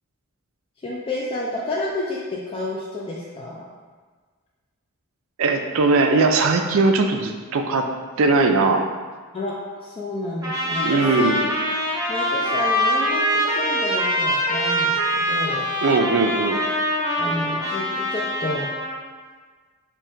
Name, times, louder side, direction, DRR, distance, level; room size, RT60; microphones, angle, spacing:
voice 1, 0.8-3.6 9.3-9.5 9.8-11.4 12.1-15.7 17.2-18.7, left 1 dB, 25° left, -5 dB, 0.3 m, -30 dB
voice 2, 5.4-7.9 8.2-8.9 10.8-11.4 15.8-16.6, right 3 dB, 65° right, 4 dB, 0.4 m, -19 dB
Trumpet, 10.4-19.0, equal, 15° right, 0.7 m, -24 dB
3.6 x 2.2 x 4.2 m, 1.5 s
head